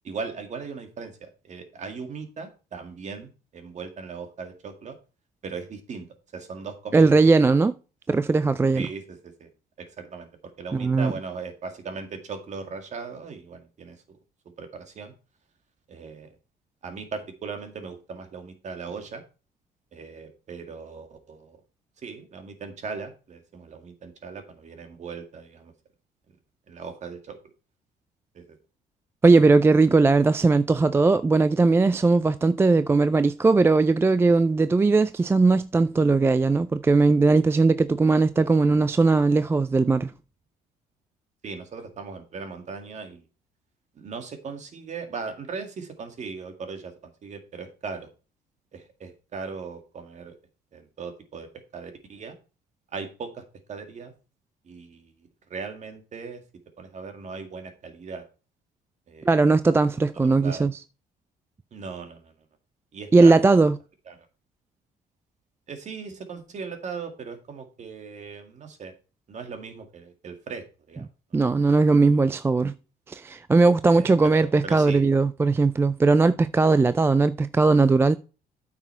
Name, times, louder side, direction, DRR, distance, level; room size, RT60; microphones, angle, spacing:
voice 1, 0.0-5.0 5.4-6.1 6.3-7.2 8.7-9.5 9.8-14.2 14.6-15.1 15.9-16.3 16.8-19.2 19.9-21.6 22.0-25.7 26.7-27.4 28.3-28.6 41.4-43.2 44.0-46.9 47.2-48.1 48.7-50.3 50.7-52.4 52.9-54.1 54.6-55.1 55.5-56.4 56.8-58.2 59.1-59.3 60.2-60.7 61.7-62.3 62.9-63.4 64.1-64.2 65.7-68.9 69.3-71.4 71.9-72.2 73.9-75.1, right 5 dB, 45° right, 2.0 m, -38 dB
voice 2, 6.9-7.8 8.1-8.9 10.7-11.1 29.2-40.1 59.3-60.8 63.1-63.8 71.3-72.7 73.1-78.1, right 3 dB, 15° right, 0.3 m, -19 dB
9.1 x 6.0 x 4.4 m
cardioid pair, 110°, 17 cm